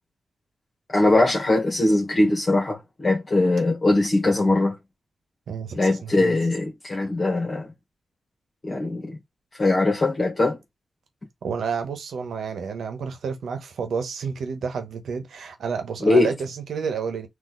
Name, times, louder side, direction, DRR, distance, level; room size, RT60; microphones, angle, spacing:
voice 1, 0.9-4.7 5.7-7.7 8.6-9.2 9.6-10.6 16.0-16.3, left 2 dB, 40° left, 1.5 m, -21 dB
voice 2, 5.5-6.4 11.4-17.3, right 6 dB, 90° right, 1.0 m, -30 dB
4.1 x 2.7 x 3.8 m
cardioid pair, 75°, 0 cm